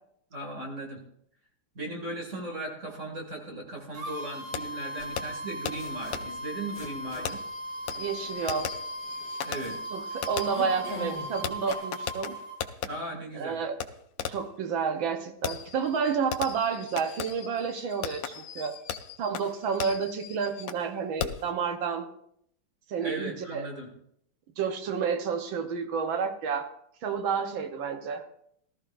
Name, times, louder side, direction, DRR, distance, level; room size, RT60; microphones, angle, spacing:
voice 1, 0.3-1.0 1.7-7.4 9.4-9.8 12.8-13.6 23.0-23.9, right 2 dB, 35° right, 0 dB, 2.5 m, -37 dB
sound 1, 3.9-12.6, right 1 dB, 55° right, 2.8 m, -38 dB
Fireworks, 4.5-4.6 5.2-5.3 5.7-5.8 6.1-6.2 7.3-12.9 13.8-13.9 14.2-14.5 15.4-20.9 21.2-21.5, left 8 dB, 70° left, 0.8 m, -37 dB
sound 2, 5.0-11.7, left 2 dB, 35° left, 2.6 m, -45 dB
voice 2, 8.0-8.7 9.9-12.4 13.3-13.8 14.3-18.8 19.2-22.1 22.9-23.7 24.6-26.7 27.0-28.2, right 6 dB, 70° right, 7 dB, 1.7 m, -30 dB
18.0 x 13.5 x 2.5 m, 0.70 s
omnidirectional pair, 2.3 m